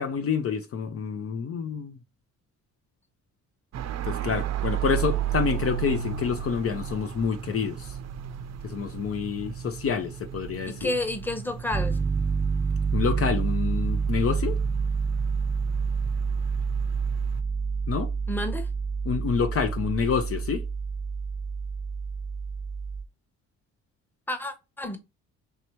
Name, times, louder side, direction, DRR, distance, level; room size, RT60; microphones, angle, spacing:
voice 1, 0.0-2.0 4.0-8.0 8.6-10.9 12.9-14.6 17.9-18.1 19.1-20.6, left 6 dB, 50° left, 0.6 m, -28 dB
sound 1, 3.7-17.4, right 10 dB, 60° right, 0.6 m, -35 dB
voice 2, 10.7-12.0 18.3-18.7 24.3-25.0, left 1 dB, 5° left, 0.9 m, -30 dB
Piano, 11.7-23.0, right 5 dB, 15° right, 0.4 m, -28 dB
3.3 x 2.9 x 4.4 m
cardioid pair, 90°, 30 cm